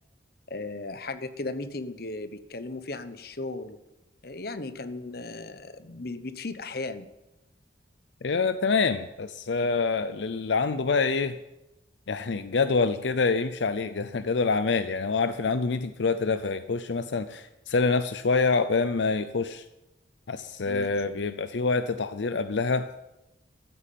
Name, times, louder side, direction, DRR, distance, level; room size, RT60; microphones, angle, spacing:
voice 1, 0.5-3.8 4.2-7.1 20.6-20.9, left 2 dB, 55° left, 11 dB, 1.0 m, -36 dB
voice 2, 8.2-11.4 12.1-19.6 20.3-22.9, left 4 dB, 75° left, 11 dB, 0.6 m, -26 dB
14.0 x 8.5 x 9.2 m, 0.98 s
head